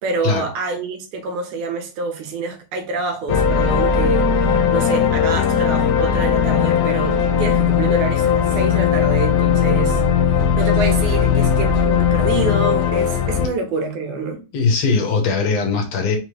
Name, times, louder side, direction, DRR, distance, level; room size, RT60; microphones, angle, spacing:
voice 1, 0.0-10.0 10.3-14.4, right 3 dB, 80° right, 2.5 m, -27 dB
sound 1, 3.3-13.5, left 7 dB, 90° left, 2.1 m, -18 dB
voice 2, 14.5-16.2, left 4 dB, 70° left, 2.0 m, -19 dB
5.3 x 3.1 x 3.1 m
omnidirectional pair, 3.4 m